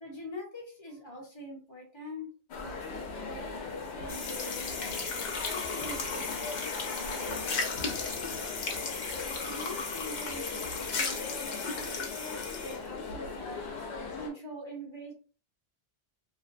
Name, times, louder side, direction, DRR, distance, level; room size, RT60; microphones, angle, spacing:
voice 1, 0.0-5.0 5.4-8.8 9.5-13.6 14.2-15.1, equal, 25° left, -2 dB, 1.0 m, -44 dB
sound 1, 2.5-14.3, left 4 dB, 90° left, 0.9 m, -39 dB
sound 2, 4.1-12.8, left 4 dB, 55° left, 0.6 m, -36 dB
2.6 x 2.1 x 2.5 m, 0.38 s
omnidirectional pair, 1.1 m